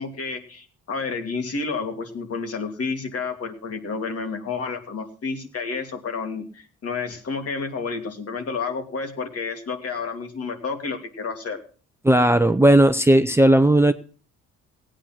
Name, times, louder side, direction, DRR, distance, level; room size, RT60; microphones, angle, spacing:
voice 1, 0.0-11.6, left 4 dB, 50° left, 5 dB, 2.8 m, -30 dB
voice 2, 12.0-13.9, right 1 dB, 10° right, 9 dB, 0.7 m, -16 dB
17.0 x 9.0 x 6.0 m, 0.40 s
cardioid pair, 90°, 30 cm